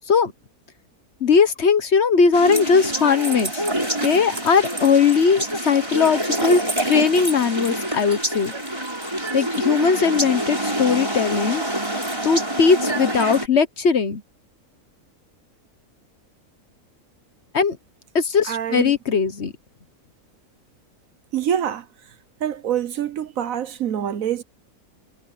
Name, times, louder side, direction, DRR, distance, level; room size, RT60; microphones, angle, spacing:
voice 1, 1.2-3.6 4.0-8.5 9.3-11.6 12.2-14.2 17.5-17.8 18.1-19.5, left 5 dB, 50° left, 1.2 m, -19 dB
sound 1, 2.3-13.5, right 1 dB, 15° right, 5.6 m, -26 dB
voice 2, 18.5-18.9 21.3-21.8 22.4-24.4, right 9 dB, 65° right, 1.2 m, -25 dB
omnidirectional pair, 1.6 m